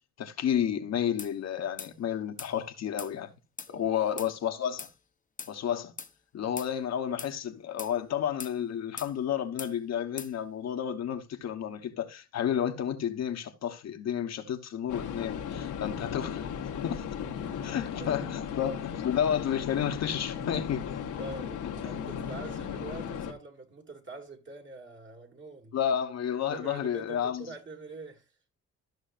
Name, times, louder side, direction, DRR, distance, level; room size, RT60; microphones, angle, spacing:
voice 1, 0.2-3.3 3.7-4.9 5.5-5.9 6.3-16.5 16.8-17.0 17.6-21.0 21.8-21.9 25.7-27.4, left 9 dB, 60° left, 1.2 m, -31 dB
sound 1, 1.2-1.3 1.8-1.9 2.4-2.5 3.0-3.1 3.6-3.7 4.2-4.3 4.8-4.9 5.4-5.5 6.0-6.1 6.6-6.7 7.2-7.3 7.8-7.9 8.4-8.6 9.0-9.1 9.6-9.7 10.2-10.3, left 5 dB, 25° left, 0.9 m, -41 dB
voice 2, 3.7-4.1 17.4-18.1 21.2-25.8 26.5-28.4, right 3 dB, 40° right, 2.3 m, -45 dB
sound 2, 14.9-23.3, left 8 dB, 80° left, 1.4 m, -36 dB
13.5 x 6.2 x 2.5 m
cardioid pair, 90°, 30 cm